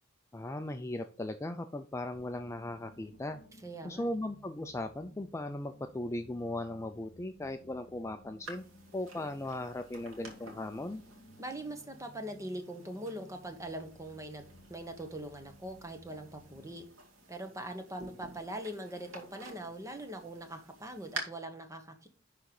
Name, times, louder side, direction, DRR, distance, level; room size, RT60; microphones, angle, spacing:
voice 1, 0.3-3.4 3.8-8.6 8.9-11.0, left 1 dB, 15° left, 7 dB, 0.4 m, -38 dB
sound 1, 2.1-16.8, equal, 45° left, 2.5 m, -58 dB
voice 2, 3.6-4.1 11.4-16.8 17.3-22.1, right 1 dB, 15° right, 6 dB, 1.1 m, -42 dB
sound 2, 8.4-21.2, right 3 dB, 90° right, 2.2 m, -50 dB
11.0 x 3.8 x 4.7 m, 0.39 s
head